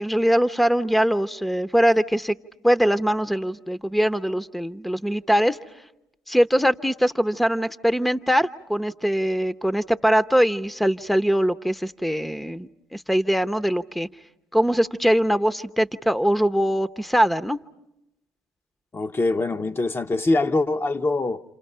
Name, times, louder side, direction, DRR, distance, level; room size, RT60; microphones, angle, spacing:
voice 1, 0.0-2.3 2.6-5.6 6.3-14.1 14.5-17.6, equal, ahead, 0.9 m, -22 dB
voice 2, 18.9-21.4, left 2 dB, 25° left, 0.9 m, -23 dB
29.5 x 27.5 x 5.6 m
hypercardioid pair, 55°, 9 cm